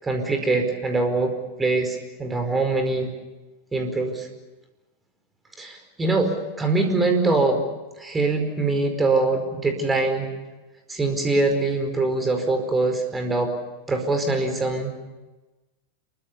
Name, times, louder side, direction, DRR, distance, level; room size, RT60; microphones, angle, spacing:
voice 1, 0.0-1.3 1.6-3.1 3.7-4.3 5.6-7.6 8.0-10.3 10.9-13.5 13.9-15.0, right 3 dB, 15° right, 6 dB, 4.9 m, -23 dB
27.5 x 24.0 x 6.9 m, 1.1 s
figure-of-eight pair, 90°, 0 cm